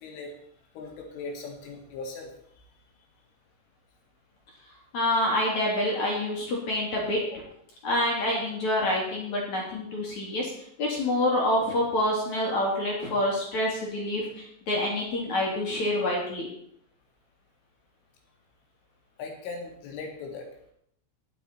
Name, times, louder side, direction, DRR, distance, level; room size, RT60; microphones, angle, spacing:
voice 1, 0.0-0.3 0.7-2.3 11.6-11.7 19.2-20.5, left 4 dB, 75° left, 1 dB, 4.7 m, -38 dB
voice 2, 4.9-7.2 7.8-10.5 10.8-16.5, left 1 dB, 40° left, -3 dB, 3.7 m, -27 dB
21.5 x 7.2 x 4.5 m, 0.70 s
omnidirectional pair, 5.8 m